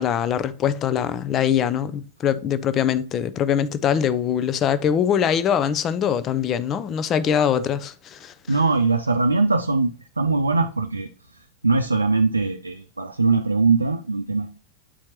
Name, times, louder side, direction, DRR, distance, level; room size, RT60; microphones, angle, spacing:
voice 1, 0.0-8.3, left 8 dB, 30° left, 0.5 m, -23 dB
voice 2, 8.5-11.1 11.6-14.6, right 3 dB, 80° right, 0.4 m, -21 dB
8.5 x 4.4 x 2.8 m
figure-of-eight pair, 90°, 0 cm